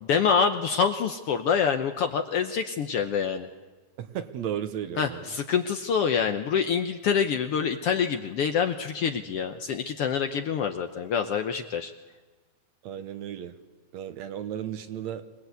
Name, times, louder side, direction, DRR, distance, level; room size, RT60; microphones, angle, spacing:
voice 1, 0.0-3.5 5.0-11.9, left 6 dB, 65° left, 7 dB, 1.5 m, -26 dB
voice 2, 4.0-5.3 12.8-13.5 13.9-15.3, right 9 dB, 70° right, 9 dB, 2.3 m, -34 dB
25.5 x 19.5 x 8.2 m, 1.2 s
omnidirectional pair, 3.5 m